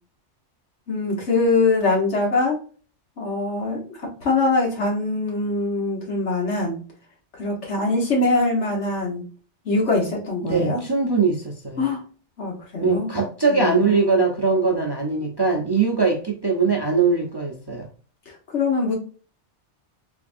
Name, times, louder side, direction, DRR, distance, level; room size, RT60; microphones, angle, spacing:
voice 1, 0.9-2.6 3.2-3.8 4.2-6.8 7.4-9.2 9.6-10.8 11.8-12.0 12.4-13.1 13.5-14.2 18.3-18.9, left 3 dB, 75° left, 1.7 m, -23 dB
voice 2, 10.4-11.9 12.8-17.9, right 4 dB, 25° right, 0.6 m, -21 dB
3.5 x 3.4 x 2.5 m
omnidirectional pair, 1.2 m